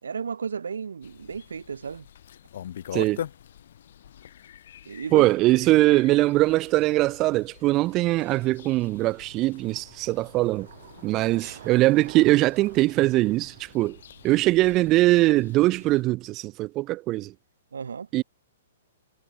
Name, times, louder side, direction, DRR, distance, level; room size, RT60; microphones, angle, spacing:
voice 1, 0.0-2.1 4.8-5.3 17.7-18.1, right 6 dB, 85° right, 3.2 m, -33 dB
sound 1, 1.0-16.0, left 10 dB, 65° left, 6.8 m, -44 dB
voice 2, 2.9-3.2 5.1-10.7 11.0-14.0 14.2-17.3 18.1-18.2, right 18 dB, 30° right, 0.6 m, -21 dB
Bicycle, 6.6-16.2, right 12 dB, 60° right, 2.4 m, -51 dB
hypercardioid pair, 130°, 0 cm